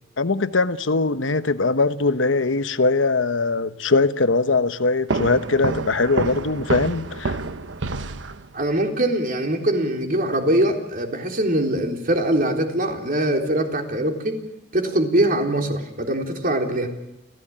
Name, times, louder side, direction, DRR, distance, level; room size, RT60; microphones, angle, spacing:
voice 1, 0.2-7.4, left 3 dB, 90° left, 1.1 m, -21 dB
sound 1, 5.1-8.8, right 3 dB, 75° right, 1.0 m, -28 dB
voice 2, 8.5-14.4 14.7-16.9, right 1 dB, 50° right, 3.7 m, -22 dB
29.5 x 15.5 x 8.8 m
head